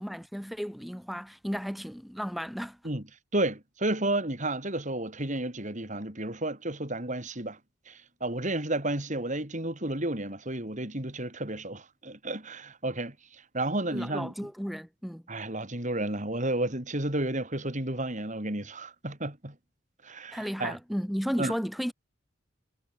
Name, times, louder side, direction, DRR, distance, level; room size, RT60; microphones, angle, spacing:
voice 1, 0.0-2.8 13.9-15.2 20.3-21.9, equal, ahead, 2.2 m, -34 dB
voice 2, 3.3-7.6 7.9-13.1 13.5-14.3 15.3-19.5 20.0-20.8 21.4-21.5, right 1 dB, 40° right, 4.7 m, -32 dB
head